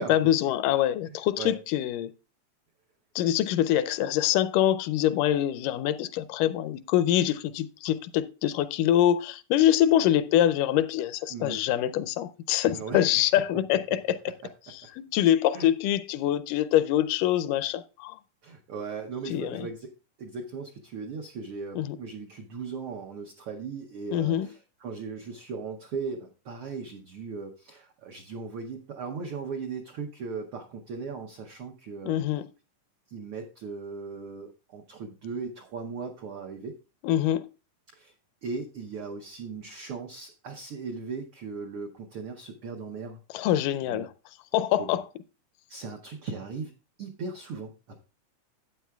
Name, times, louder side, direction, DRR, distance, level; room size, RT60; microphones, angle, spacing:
voice 1, 0.0-2.1 3.2-14.2 15.1-18.2 19.3-19.7 21.8-22.0 24.1-24.5 32.1-32.5 37.0-37.5 43.3-44.1 44.5-45.0, left 12 dB, 85° left, 2.1 m, -24 dB
voice 2, 1.1-1.6 11.3-11.6 12.7-13.0 14.8-14.9 15.5-15.7 18.4-19.9 20.2-32.2 33.1-36.7 37.9-38.1 38.4-43.2 43.9-44.1 44.8-44.9 45.7-46.7 47.0-48.0, right 5 dB, 80° right, 1.2 m, -38 dB
12.5 x 8.5 x 2.3 m
omnidirectional pair, 3.7 m